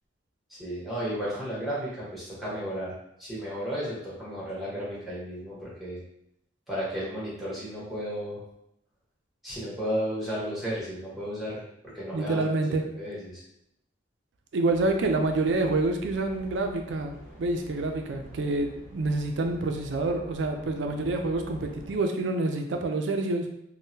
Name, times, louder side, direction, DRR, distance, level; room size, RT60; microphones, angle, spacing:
voice 1, 0.5-6.0 6.7-8.4 9.4-12.4 13.0-13.4, equal, ahead, -8 dB, 1.1 m, -33 dB
voice 2, 12.1-12.8 14.5-23.4, right 2 dB, 70° right, 4 dB, 0.4 m, -27 dB
sound 1, 14.7-22.0, equal, 55° left, 0.9 m, -47 dB
3.6 x 2.1 x 2.7 m, 0.77 s
head